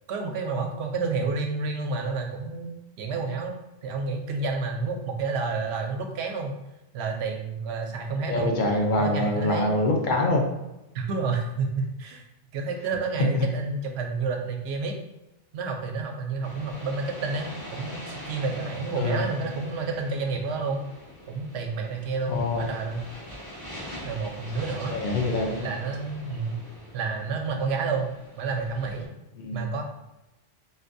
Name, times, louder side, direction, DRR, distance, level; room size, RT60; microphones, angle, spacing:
voice 1, 0.1-6.6 6.9-8.6 9.0-9.8 10.9-12.2 12.5-14.9 15.5-20.8 21.3-23.0 24.0-25.0 25.6-26.6 26.9-29.1 29.5-29.8, right 4 dB, 75° right, 3 dB, 0.8 m, -30 dB
voice 2, 8.3-10.5 13.3-13.5 19.0-19.3 22.3-22.7 24.9-25.7 29.4-29.7, left 2 dB, 55° left, 1 dB, 0.7 m, -25 dB
sound 1, 16.4-29.1, equal, 85° left, 1.9 m, -42 dB
3.9 x 2.2 x 2.5 m, 0.95 s
omnidirectional pair, 1.1 m